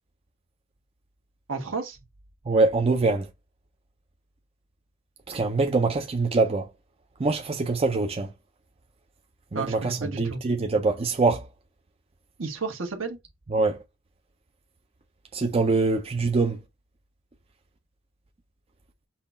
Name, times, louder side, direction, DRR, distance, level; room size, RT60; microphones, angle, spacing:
voice 1, 1.5-2.0 9.5-10.4 12.4-13.2, right 4 dB, 70° right, 1.3 m, -32 dB
voice 2, 2.5-3.3 5.3-6.7 7.2-8.3 9.5-11.5 13.5-13.8 15.3-16.6, right 3 dB, 30° right, 0.5 m, -24 dB
5.6 x 2.3 x 4.0 m
head